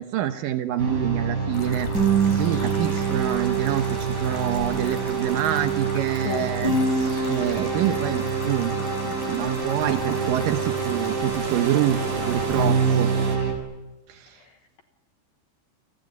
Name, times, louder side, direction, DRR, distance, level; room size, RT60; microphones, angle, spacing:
voice 1, 0.0-1.9 2.4-6.7 7.3-13.1 14.1-14.4, right 12 dB, 85° right, 8 dB, 1.9 m, -26 dB
sound 1, 0.8-13.5, right 5 dB, 20° right, 6.3 m, -25 dB
sound 2, 1.5-12.7, left 3 dB, 50° left, 4.9 m, -40 dB
sound 3, 2.2-13.4, right 6 dB, 55° right, 4.1 m, -39 dB
voice 2, 6.2-6.8 14.4-14.8, left 11 dB, 70° left, 6 dB, 2.5 m, -34 dB
29.5 x 19.0 x 9.5 m, 1.1 s
omnidirectional pair, 5.4 m